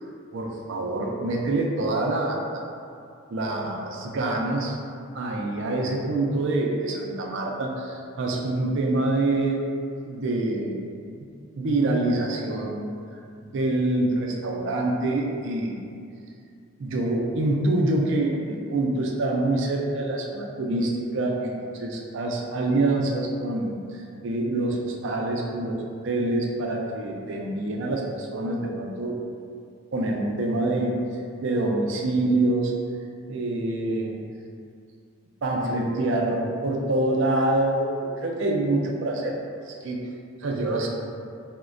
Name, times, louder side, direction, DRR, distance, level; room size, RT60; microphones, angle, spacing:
voice 1, 0.3-2.7 3.3-4.8 5.1-9.6 10.1-10.8 11.6-12.8 13.4-15.9 16.8-25.8 26.0-29.2 29.9-30.9 31.4-32.7 33.3-34.1 35.4-39.4 39.7-40.0 40.4-40.9, right 2 dB, 55° right, 0 dB, 0.3 m, -26 dB
4.0 x 2.1 x 2.4 m, 2.4 s
head